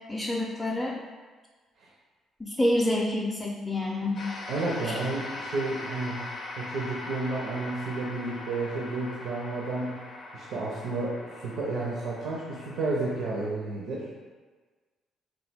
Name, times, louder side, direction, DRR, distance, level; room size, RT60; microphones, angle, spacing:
voice 1, 0.1-1.0 2.4-4.2 4.8-5.0, left 1 dB, 15° left, -3 dB, 0.4 m, -27 dB
sound 1, 4.1-13.5, left 2 dB, 70° left, 0.5 m, -41 dB
voice 2, 4.5-6.2 6.6-10.0 10.3-14.1, right 2 dB, 80° right, -4 dB, 0.5 m, -31 dB
3.0 x 2.2 x 3.4 m, 1.4 s
supercardioid pair, 65°, 0 cm